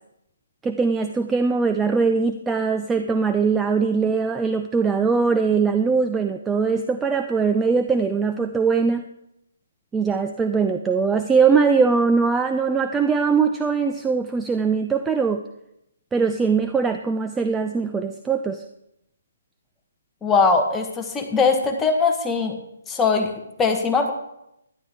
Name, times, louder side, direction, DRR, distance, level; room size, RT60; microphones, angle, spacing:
voice 1, 0.6-9.0 9.9-15.4 16.1-18.6, right 5 dB, 10° right, 7 dB, 0.4 m, -21 dB
voice 2, 20.2-22.6 22.9-23.3 23.6-24.1, left 4 dB, 10° left, 3 dB, 1.2 m, -20 dB
12.5 x 11.0 x 3.5 m, 0.83 s
figure-of-eight pair, 145°, 0 cm